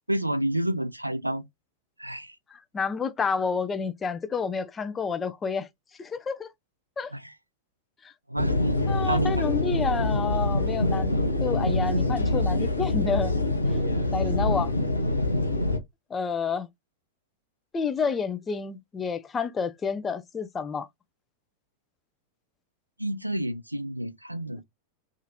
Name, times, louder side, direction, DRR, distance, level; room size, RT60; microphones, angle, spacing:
voice 1, 0.1-1.4 2.0-2.3 7.1-7.2 8.3-9.4 23.0-24.6, right 1 dB, 85° right, 0.3 m, -29 dB
voice 2, 2.5-5.7 6.0-6.5 7.0-7.1 8.0-8.1 8.9-11.1 11.4-13.3 14.1-14.7 16.1-16.7 17.7-20.9, left 5 dB, 20° left, 0.4 m, -29 dB
sound 1, 8.4-15.8, left 2 dB, 80° left, 0.6 m, -25 dB
2.8 x 2.4 x 2.7 m
figure-of-eight pair, 90°, 0 cm